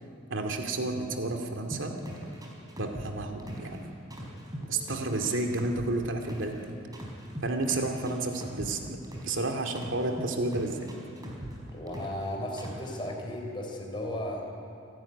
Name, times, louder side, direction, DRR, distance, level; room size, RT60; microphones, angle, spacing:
voice 1, 0.3-2.0 2.8-3.9 4.6-6.8 7.4-9.0 9.2-10.9, right 2 dB, 80° right, 4 dB, 2.4 m, -31 dB
sound 1, 1.7-3.8 4.1-6.6 6.9-9.4 9.7-12.3 12.6-12.9, equal, 20° right, 4.5 m, -40 dB
voice 2, 11.7-14.5, left 1 dB, 25° left, 0 dB, 4.0 m, -35 dB
27.5 x 13.0 x 9.9 m, 2.7 s
head